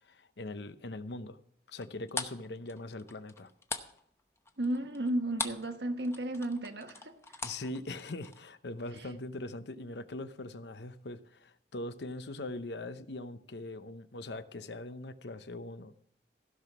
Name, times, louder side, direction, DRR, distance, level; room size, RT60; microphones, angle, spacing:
voice 1, 0.0-1.4 1.7-3.5 7.4-15.9, left 2 dB, 75° left, 12 dB, 0.8 m, -41 dB
sound 1, 1.7-5.7 6.0-8.4, left 3 dB, 15° left, 0.8 m, -40 dB
voice 2, 4.6-7.2, right 1 dB, 75° right, 7 dB, 1.3 m, -33 dB
15.5 x 6.0 x 6.0 m, 0.70 s
head